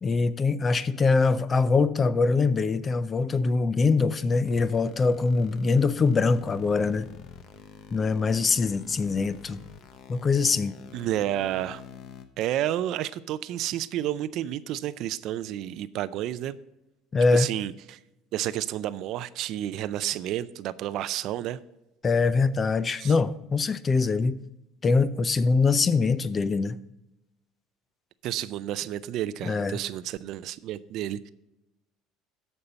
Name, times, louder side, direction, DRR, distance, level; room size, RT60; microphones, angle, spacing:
voice 1, 0.0-7.1 7.9-9.6 10.1-10.7 17.1-17.5 22.0-24.4 24.8-26.8 29.5-29.8, left 4 dB, 25° left, 15 dB, 0.4 m, -23 dB
sound 1, 4.4-12.2, left 7 dB, 50° left, 1.0 m, -47 dB
voice 2, 10.9-11.8 12.4-16.6 17.3-18.0 18.3-21.6 23.0-23.1 28.2-31.3, right 12 dB, 55° right, 16 dB, 0.4 m, -30 dB
14.0 x 5.4 x 4.1 m, 0.93 s
cardioid pair, 130°, 0 cm